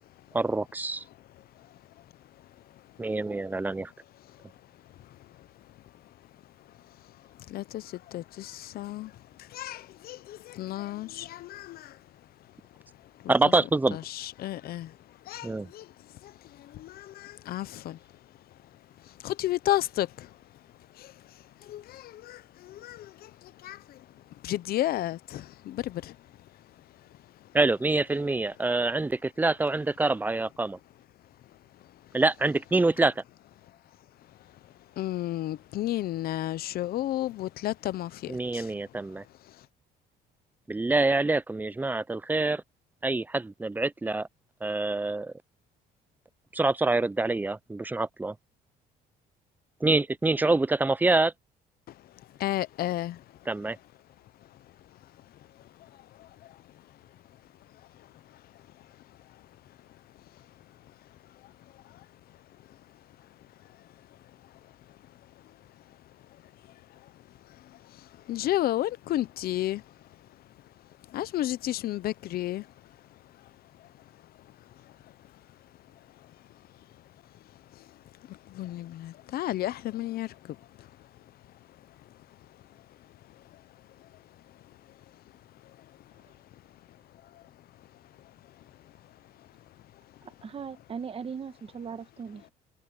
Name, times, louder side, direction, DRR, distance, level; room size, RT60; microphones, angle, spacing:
voice 1, 0.3-1.0 3.0-3.9 13.3-14.0 15.4-15.7 27.5-30.8 32.1-33.2 38.3-39.2 40.7-42.6 43.0-44.3 44.6-45.3 46.5-48.3 49.8-51.3 53.5-53.8, right 2 dB, 10° right, 0.5 m, -26 dB
voice 2, 7.5-9.1 9.4-12.0 13.2-13.3 13.9-15.0 15.3-15.9 16.2-18.0 19.0-20.3 21.0-21.1 21.6-24.0 24.4-26.2 35.0-38.7 52.4-53.2 56.2-56.3 67.7-67.8 68.3-69.8 71.1-72.7 77.8-77.9 78.3-80.9, left 14 dB, 65° left, 0.8 m, -32 dB
voice 3, 90.2-92.5, right 6 dB, 35° right, 1.4 m, -39 dB
cardioid pair, 110°, 17 cm